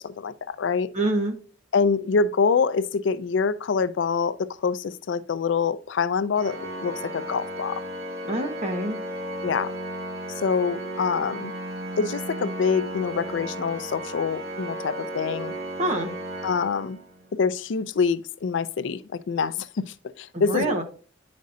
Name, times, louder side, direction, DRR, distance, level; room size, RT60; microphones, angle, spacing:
voice 1, 0.0-0.9 1.7-7.8 9.4-9.7 10.4-11.5 12.0-15.5 16.4-17.0 17.3-20.8, left 5 dB, 70° left, 0.4 m, -25 dB
voice 2, 0.9-1.4 8.3-9.0 15.8-16.1 20.3-20.8, right 2 dB, 35° right, 1.1 m, -26 dB
Organ, 6.4-17.3, right 1 dB, 55° right, 1.0 m, -34 dB
9.4 x 5.2 x 2.6 m
head